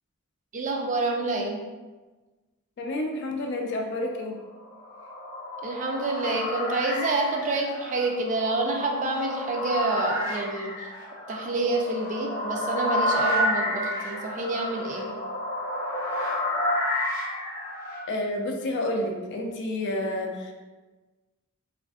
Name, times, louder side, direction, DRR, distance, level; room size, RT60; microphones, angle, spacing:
voice 1, 0.5-1.6 5.6-10.9 11.3-15.1, right 2 dB, 35° right, 1 dB, 0.3 m, -28 dB
voice 2, 2.8-4.4 18.1-20.5, left 1 dB, 55° left, 2 dB, 0.4 m, -29 dB
sound 1, 4.6-18.1, left 1 dB, 35° left, 0.9 m, -30 dB
3.3 x 2.4 x 2.3 m, 1.2 s
head